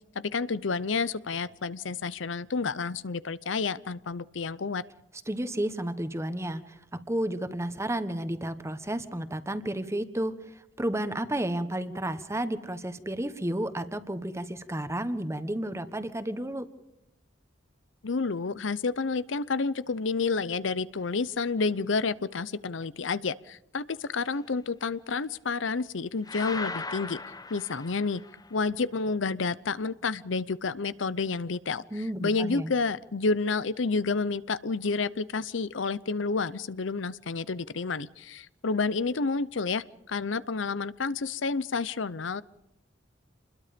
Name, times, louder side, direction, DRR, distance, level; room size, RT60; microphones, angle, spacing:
voice 1, 0.1-4.8 18.0-27.2 27.5-28.2 28.5-31.8 32.2-42.4, left 4 dB, 80° left, 17 dB, 0.7 m, -30 dB
voice 2, 5.3-16.7 31.9-32.7, right 1 dB, 15° right, 11 dB, 1.3 m, -32 dB
sound 1, 26.3-28.5, left 3 dB, 20° left, 0.9 m, -38 dB
27.5 x 21.5 x 5.2 m, 0.87 s
head